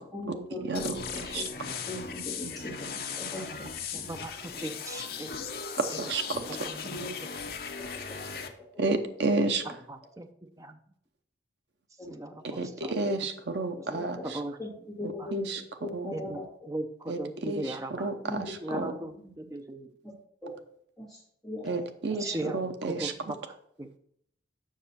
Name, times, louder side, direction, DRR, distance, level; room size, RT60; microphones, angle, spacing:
voice 1, 0.0-2.7 3.2-3.7 3.9-4.1 6.8-7.1 7.8-7.9 12.0-12.2 12.6-12.7 13.8-14.2 14.6-16.4 18.2-18.9 19.1-19.3 20.0-20.1 20.4-20.5 21.0-21.8 22.1-22.5, left 1 dB, ahead, -8 dB, 2.3 m, -40 dB
sound 1, 0.7-8.5, left 6 dB, 55° left, 0.8 m, -38 dB
voice 2, 3.9-5.3 5.9-7.0 9.6-10.8 12.1-13.1 13.8-14.6 15.2-15.3 16.1-16.4 16.7-18.1 18.6-19.9 22.2-22.6 22.9-23.5 23.8-23.9, right 1 dB, 20° right, 7 dB, 0.5 m, -38 dB
voice 3, 5.8-6.7 8.8-9.6 12.4-14.2 15.3-15.6 15.9-16.1 17.1-18.4 18.7-18.9 21.6-23.1, right 3 dB, 70° right, 7 dB, 0.8 m, -31 dB
7.4 x 6.0 x 4.2 m, 0.69 s
head